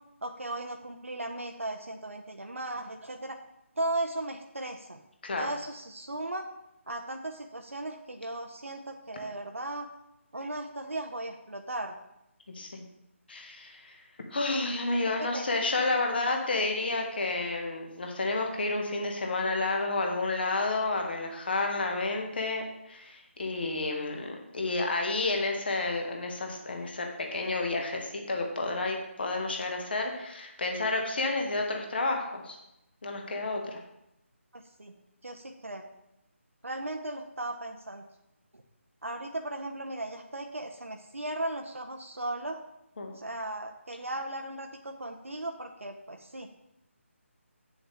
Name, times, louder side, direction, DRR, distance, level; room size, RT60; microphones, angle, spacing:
voice 1, 0.2-3.4 3.8-5.0 5.4-6.4 6.9-9.9 10.3-11.9 15.2-15.5 15.9-16.0 34.5-34.9 35.2-35.8 36.6-38.0 39.0-42.6 43.1-46.5, right 1 dB, 75° right, 4 dB, 0.8 m, -36 dB
voice 2, 13.3-13.9 14.3-32.6 33.0-33.8 43.0-43.1, left 2 dB, 45° left, 2 dB, 1.7 m, -30 dB
8.8 x 7.2 x 3.5 m, 0.86 s
figure-of-eight pair, 150°, 7 cm